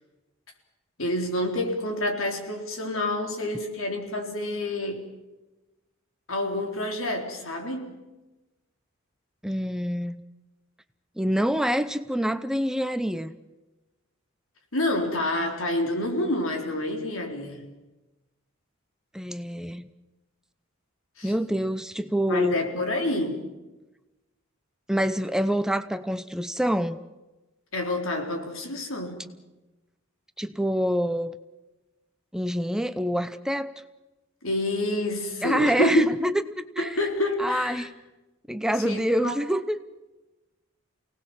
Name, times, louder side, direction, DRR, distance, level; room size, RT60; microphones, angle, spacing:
voice 1, 1.0-5.1 6.3-8.0 14.7-17.7 21.2-21.3 22.3-23.5 27.7-29.3 34.4-36.1 36.8-37.9 38.8-39.3, left 1 dB, 80° left, 3 dB, 4.0 m, -28 dB
voice 2, 9.4-10.2 11.2-13.3 19.1-19.9 21.2-22.6 24.9-27.0 30.4-31.3 32.3-33.7 35.4-36.9 37.4-37.9 38.5-39.8, equal, 5° right, 11 dB, 0.7 m, -26 dB
29.0 x 18.5 x 7.4 m, 1.1 s
head